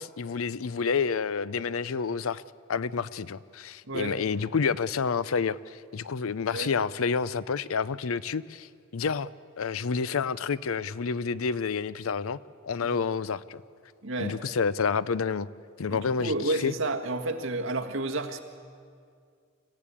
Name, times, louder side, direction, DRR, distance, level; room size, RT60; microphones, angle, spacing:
voice 1, 0.0-2.4 2.7-9.3 9.6-12.4 12.6-13.6 14.2-15.5 15.8-16.7, left 5 dB, 80° left, 18 dB, 0.6 m, -29 dB
voice 2, 3.9-4.2 6.5-6.7 12.8-13.0 14.0-14.3 15.9-18.4, right 2 dB, 70° right, 3 dB, 1.7 m, -31 dB
26.0 x 15.5 x 8.5 m, 2.2 s
head